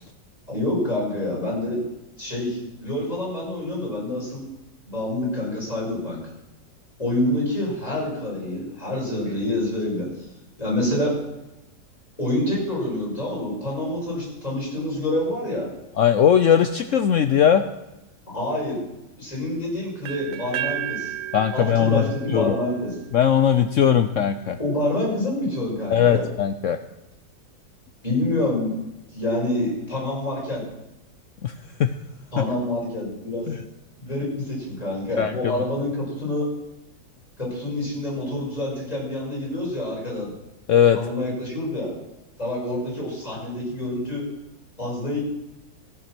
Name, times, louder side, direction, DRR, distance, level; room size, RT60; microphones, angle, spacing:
voice 1, 0.5-1.8 2.2-4.4 4.9-6.2 7.0-10.1 10.6-11.1 12.2-15.7 18.3-18.8 19.2-21.1 21.5-22.9 24.6-26.3 28.0-28.8 29.1-30.6 32.3-33.5 34.0-36.5 37.4-40.3 40.9-41.9 42.4-44.2 44.8-45.2, left 1 dB, 20° left, -5 dB, 5.9 m, -27 dB
voice 2, 16.0-17.6 21.3-22.0 22.3-22.5 23.1-24.6 25.9-26.8 31.4-31.5 31.8-31.9 32.4-32.5 33.5-33.6 35.2-35.4 40.7-41.0, left 9 dB, 80° left, 9 dB, 0.7 m, -19 dB
sound 1, 20.0-23.9, right 12 dB, 75° right, 0.7 m, -34 dB
15.5 x 8.5 x 6.0 m, 0.95 s
omnidirectional pair, 2.0 m